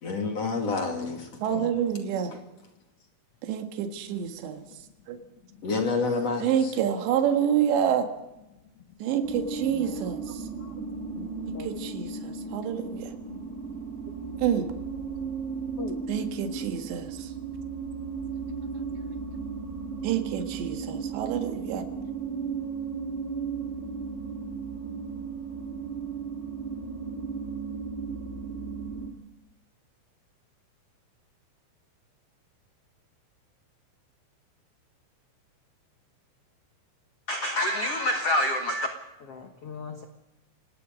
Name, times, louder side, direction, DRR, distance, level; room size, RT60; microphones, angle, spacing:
voice 1, 0.0-1.7 5.6-6.7, left 4 dB, 45° left, 2.8 m, -29 dB
voice 2, 1.4-2.3 3.4-4.6 5.1-5.2 6.4-8.1 9.0-10.4 11.5-13.1 14.4-14.7 16.1-17.3 20.0-21.8, right 9 dB, 75° right, 3.8 m, -28 dB
voice 3, 4.4-4.8 5.5-5.7 8.9-9.0 9.6-10.7 11.1-11.7 15.8-16.1 18.4-18.5 37.3-40.0, left 1 dB, 90° left, 1.3 m, -31 dB
sound 1, 9.2-29.1, right 5 dB, 35° right, 1.0 m, -35 dB
26.5 x 18.5 x 5.3 m
omnidirectional pair, 5.2 m